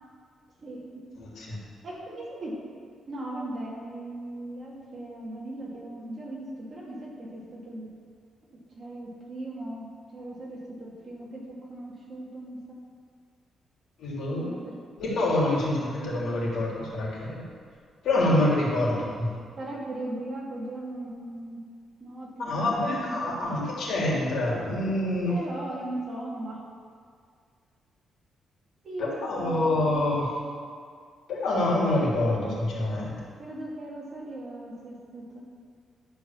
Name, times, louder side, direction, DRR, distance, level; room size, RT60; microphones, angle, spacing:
voice 1, 0.6-1.0 1.8-2.6 3.1-7.9 8.8-12.8 14.4-14.7 15.5-15.9 19.6-21.6 22.0-23.5 25.3-26.6 28.8-30.1 33.4-35.4, right 1 dB, 35° right, -5 dB, 2.5 m, -38 dB
voice 2, 1.2-1.6 14.0-14.5 15.0-17.4 18.0-19.3 22.4-25.4 29.0-30.3 31.3-33.2, left 1 dB, 70° left, -5 dB, 3.1 m, -26 dB
11.5 x 4.6 x 7.3 m, 2.1 s
cardioid pair, 160°, 0 cm